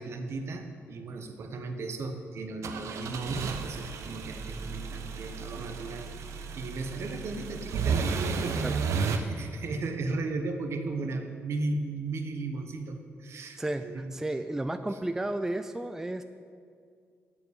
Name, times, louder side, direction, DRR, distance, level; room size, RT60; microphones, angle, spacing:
voice 1, 0.0-6.1 6.6-8.6 9.0-14.1, right 3 dB, 65° right, 6 dB, 1.0 m, -35 dB
sound 1, 2.6-9.2, right 5 dB, 80° right, 0.7 m, -33 dB
voice 2, 13.6-16.2, right 1 dB, 10° right, 8 dB, 0.3 m, -32 dB
7.7 x 7.2 x 8.2 m, 2.2 s
cardioid pair, 105°, 5 cm